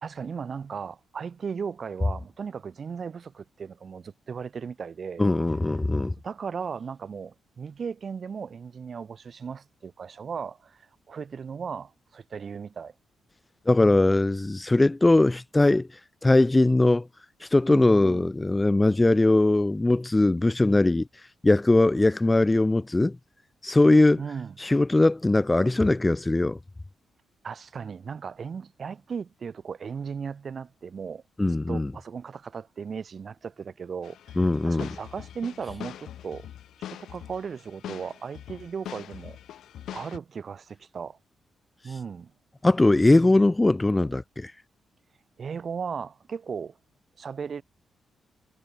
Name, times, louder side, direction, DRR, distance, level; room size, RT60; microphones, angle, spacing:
voice 1, 0.0-5.2 6.2-12.9 17.7-18.3 24.2-24.6 27.4-31.2 31.7-36.5 36.9-39.4 39.9-41.2 41.8-42.3 45.4-46.8 47.2-47.6, right 6 dB, 40° right, 1.1 m, -36 dB
voice 2, 5.2-6.1 13.7-15.9 16.2-17.1 17.4-21.1 21.4-23.2 23.6-24.2 24.6-26.6 31.4-31.9 34.4-34.9 42.6-44.5, left 2 dB, 15° left, 0.6 m, -20 dB
sound 1, 34.0-40.2, left 11 dB, 80° left, 3.7 m, -42 dB
cardioid pair, 140°, 0 cm